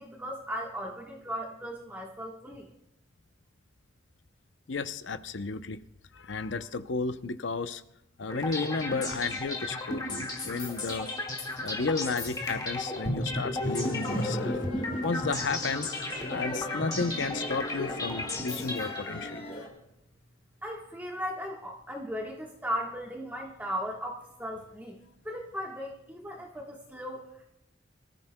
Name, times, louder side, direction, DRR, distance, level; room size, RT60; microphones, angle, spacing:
voice 1, 0.0-2.7 20.6-25.0 25.2-27.4, equal, 10° right, -2 dB, 1.3 m, -37 dB
voice 2, 4.7-5.8 6.1-7.8 8.2-11.1 11.6-14.6 15.0-15.9 16.3-19.4, left 4 dB, 70° left, 11 dB, 0.6 m, -33 dB
sound 1, 8.3-19.4, left 1 dB, 20° left, 1.8 m, -34 dB
sound 2, 13.6-19.7, left 1 dB, 45° left, 3.6 m, -40 dB
24.5 x 14.0 x 2.2 m, 0.83 s
head